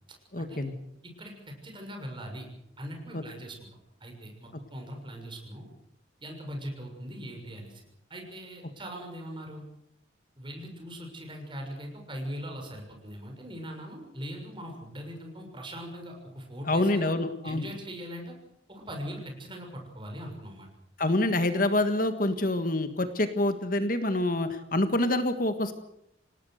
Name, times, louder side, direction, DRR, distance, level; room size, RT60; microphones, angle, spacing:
voice 1, 0.3-0.7 3.1-3.2 16.7-17.6 21.0-25.7, left 1 dB, 45° left, 9 dB, 1.7 m, -26 dB
voice 2, 1.0-2.5 2.8-3.7 4.0-5.7 6.2-7.8 8.1-9.6 10.4-17.1 17.4-18.3 18.7-20.7, equal, 25° right, 2 dB, 6.6 m, -40 dB
28.0 x 18.5 x 6.6 m, 0.78 s
head